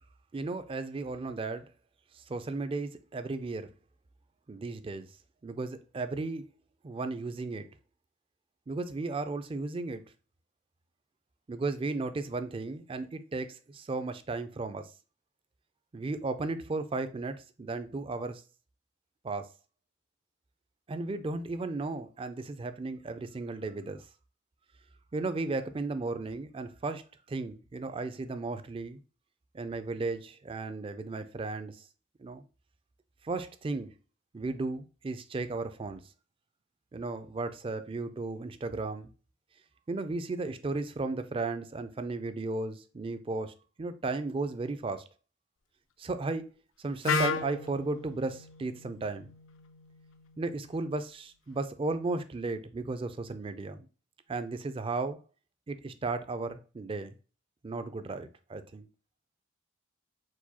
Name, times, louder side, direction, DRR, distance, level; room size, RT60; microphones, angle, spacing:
voice 1, 0.3-1.7 2.1-3.7 4.5-5.1 5.4-6.5 6.8-7.7 8.7-10.0 11.5-14.9 15.9-18.4 19.2-19.5 20.9-24.1 25.1-29.0 29.5-31.8 32.2-32.4 33.2-33.9 34.3-36.0 36.9-39.1 39.9-45.1 46.0-46.5 46.8-49.3 50.4-53.9 54.3-55.2 55.7-57.2 57.6-58.9, right 3 dB, 25° right, 0.3 m, -35 dB
Wind instrument woodwind instrument, 47.0-50.9, left 4 dB, 80° left, 0.5 m, -35 dB
4.6 x 2.2 x 4.1 m
head